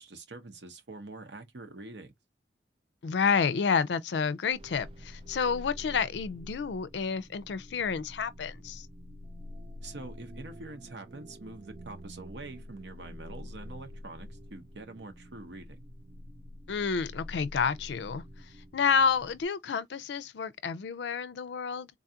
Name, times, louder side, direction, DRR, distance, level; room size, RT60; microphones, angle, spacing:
voice 1, 0.0-2.1 9.8-15.8, right 2 dB, 85° right, 0.9 m, -45 dB
voice 2, 3.0-8.9 16.7-18.2 18.7-21.9, left 6 dB, 80° left, 0.4 m, -29 dB
sound 1, 4.5-19.4, left 1 dB, 30° right, 0.4 m, -47 dB
3.9 x 2.4 x 2.8 m
head